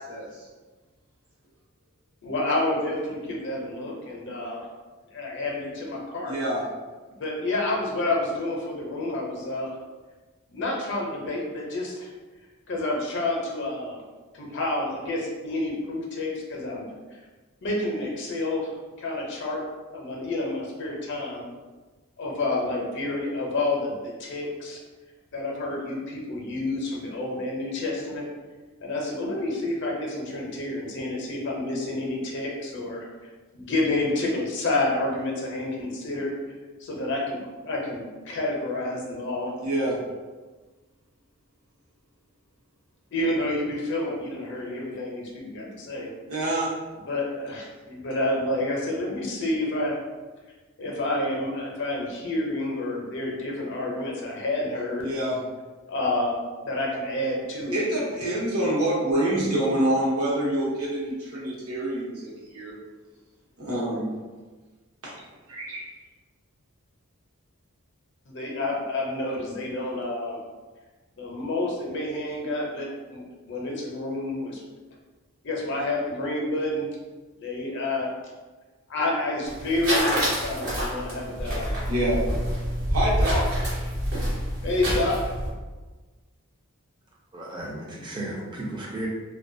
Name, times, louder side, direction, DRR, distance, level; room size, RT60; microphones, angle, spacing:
voice 1, 2.2-4.7 5.1-6.4 7.1-9.7 10.5-12.1 12.7-14.0 14.3-16.9 17.6-18.7 19.0-19.6 19.9-21.4 22.2-24.8 25.3-28.2 28.8-33.1 33.5-36.3 36.8-39.5 43.1-46.1 47.0-50.0 50.8-55.1 55.9-57.9 68.3-70.4 71.2-74.6 75.4-76.9 77.4-78.1 78.9-81.9 84.6-85.3, left 2 dB, 55° left, -2 dB, 0.5 m, -29 dB
voice 2, 6.2-6.6 39.6-39.9 46.3-46.7 55.0-55.3 57.7-62.7 63.6-64.1 65.0-65.1 65.5-65.8 81.9-82.2 82.9-83.4, right 1 dB, 80° right, -6 dB, 0.9 m, -26 dB
sound 1, 79.5-85.5, equal, 65° right, 1.1 m, -27 dB
voice 3, 87.3-89.1, right 1 dB, 20° right, -4 dB, 0.4 m, -34 dB
2.3 x 2.2 x 2.6 m, 1.3 s
head